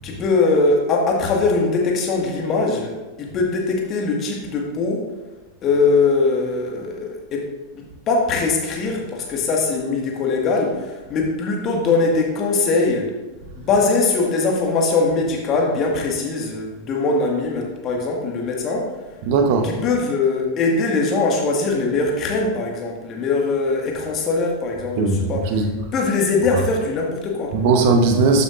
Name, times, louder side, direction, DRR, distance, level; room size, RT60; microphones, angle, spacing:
voice 1, 0.0-5.0 5.6-13.1 13.5-18.9 19.6-25.5 25.9-27.6, left 3 dB, 30° left, 0 dB, 1.8 m, -21 dB
voice 2, 19.2-19.7 25.0-25.7 26.4-26.6 27.5-28.4, right 4 dB, 45° right, 4 dB, 1.1 m, -18 dB
12.0 x 6.9 x 2.6 m, 1.2 s
figure-of-eight pair, 90°, 0 cm